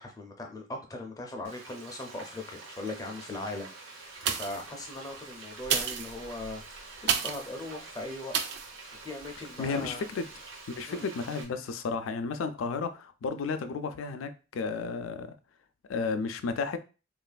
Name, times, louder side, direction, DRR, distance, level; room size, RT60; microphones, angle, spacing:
voice 1, 0.0-8.3 9.0-10.1 10.9-11.1, left 2 dB, 20° left, 0.5 m, -39 dB
Frying (food), 1.4-11.4, right 3 dB, 85° right, 0.8 m, -47 dB
sound 1, 4.2-4.7 5.6-7.5 8.3-8.7 9.2-9.3, right 8 dB, 55° right, 0.3 m, -31 dB
voice 2, 9.6-10.3 10.7-15.3 15.9-16.8, left 4 dB, 90° left, 0.4 m, -33 dB
3.1 x 2.4 x 2.2 m
head